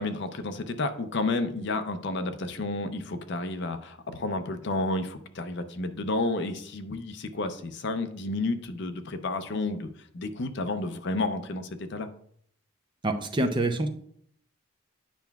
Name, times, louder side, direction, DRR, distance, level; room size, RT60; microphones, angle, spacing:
voice 1, 0.0-9.9 10.1-12.1, left 2 dB, 55° left, 9 dB, 0.5 m, -31 dB
voice 2, 13.0-13.9, right 2 dB, 20° right, 6 dB, 0.5 m, -26 dB
9.1 x 5.7 x 2.3 m, 0.63 s
head